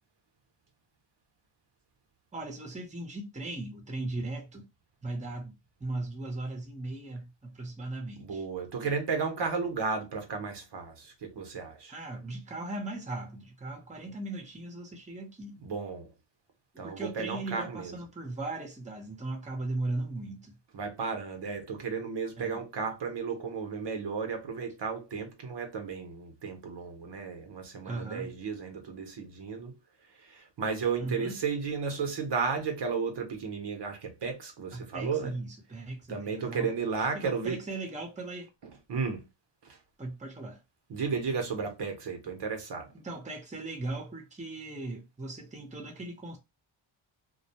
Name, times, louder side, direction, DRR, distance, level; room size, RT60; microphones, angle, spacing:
voice 1, 2.3-4.7 5.0-8.4 11.9-15.6 16.8-20.6 22.4-22.6 27.8-28.3 31.0-31.4 34.7-36.7 37.1-38.5 40.0-40.6 43.0-46.4, right 2 dB, 15° right, 0.9 m, -38 dB
voice 2, 8.2-11.9 15.6-16.1 16.8-18.0 20.7-29.7 30.2-35.4 36.1-37.8 38.6-39.3 39.6-39.8 40.9-42.9, right 5 dB, 55° right, 0.8 m, -34 dB
2.3 x 2.2 x 2.8 m
cardioid pair, 70°, 49 cm